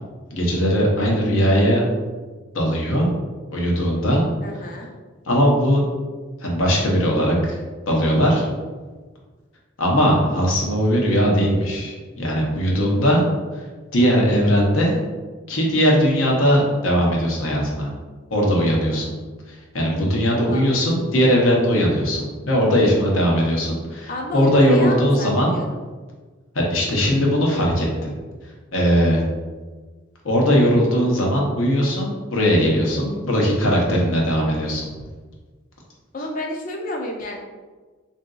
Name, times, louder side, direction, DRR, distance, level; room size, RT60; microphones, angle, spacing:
voice 1, 0.3-1.8 2.5-3.1 3.5-4.2 5.3-5.8 6.4-7.6 7.9-8.5 9.8-13.2 13.9-15.0 15.5-17.9 18.3-19.1 19.5-25.5 26.5-28.1 28.7-29.2 30.2-34.8, equal, 90° left, -2 dB, 0.8 m, -19 dB
voice 2, 4.4-4.9 20.3-20.6 24.1-25.8 36.1-37.4, left 1 dB, 40° left, 1 dB, 0.4 m, -30 dB
3.6 x 2.6 x 2.3 m, 1.4 s
head